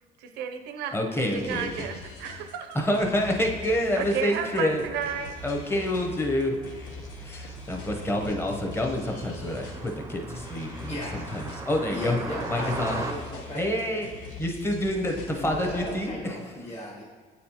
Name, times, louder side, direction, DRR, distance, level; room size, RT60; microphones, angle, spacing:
voice 1, 0.2-2.8 3.9-5.3, right 8 dB, 85° right, 7 dB, 0.5 m, -33 dB
voice 2, 0.9-1.9 2.7-4.8 5.4-6.6 7.2-12.2 12.5-13.0 13.5-14.1 14.4-16.4, left 1 dB, 15° left, 1 dB, 0.8 m, -28 dB
sound 1, 1.3-16.1, left 3 dB, 85° left, 1.0 m, -43 dB
Car passing by, 3.1-13.1, right 3 dB, 15° right, 0.4 m, -40 dB
voice 3, 11.9-13.6 15.3-17.0, left 1 dB, 35° left, -6 dB, 1.1 m, -36 dB
8.3 x 4.2 x 2.8 m, 1.5 s
cardioid pair, 110°, 17 cm